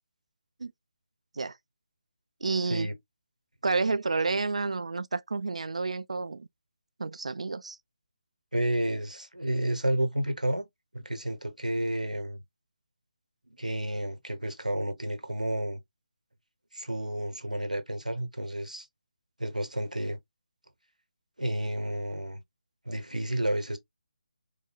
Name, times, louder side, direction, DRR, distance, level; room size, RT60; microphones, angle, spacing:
voice 1, 2.4-2.9 3.6-6.5 7.0-7.8, right 3 dB, 60° right, 0.4 m, -30 dB
voice 2, 8.5-10.7 10.9-12.4 13.6-15.8 16.7-18.9 19.4-20.2 21.4-22.4 22.9-23.8, right 1 dB, 85° right, 0.9 m, -31 dB
4.9 x 2.2 x 2.2 m
figure-of-eight pair, 150°, 4 cm